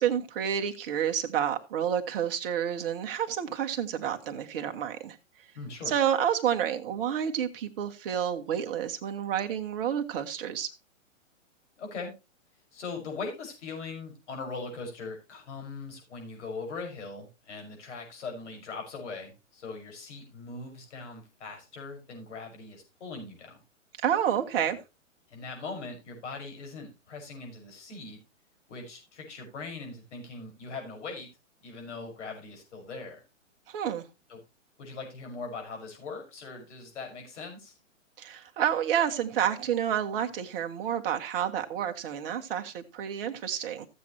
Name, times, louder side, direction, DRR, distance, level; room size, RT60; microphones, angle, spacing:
voice 1, 0.0-5.2 5.9-10.7 24.0-24.8 33.7-34.1 38.2-43.9, right 9 dB, 45° right, 1.5 m, -29 dB
voice 2, 5.5-5.9 11.8-12.1 12.7-23.6 24.7-24.8 25.3-28.2 28.7-31.3 31.6-33.2 34.3-34.4 34.8-37.8, left 4 dB, 60° left, 5.8 m, -40 dB
15.0 x 7.7 x 3.0 m
hypercardioid pair, 130°, 39 cm